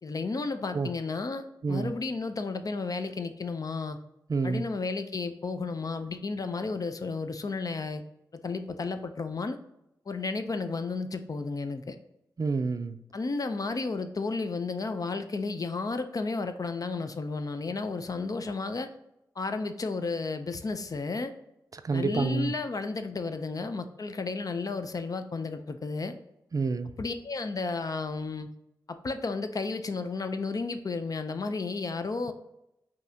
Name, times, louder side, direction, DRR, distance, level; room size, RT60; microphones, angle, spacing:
voice 1, 0.0-4.0 4.4-8.0 8.4-9.6 10.1-12.0 13.1-18.9 19.4-21.3 21.9-26.2 27.0-28.5 28.9-32.3, left 3 dB, 50° left, 8 dB, 0.5 m, -33 dB
voice 2, 4.3-4.6 12.4-13.0 21.7-22.5 26.5-26.9, right 4 dB, 45° right, 10 dB, 0.4 m, -28 dB
5.3 x 2.8 x 2.7 m, 0.85 s
cardioid pair, 45°, 8 cm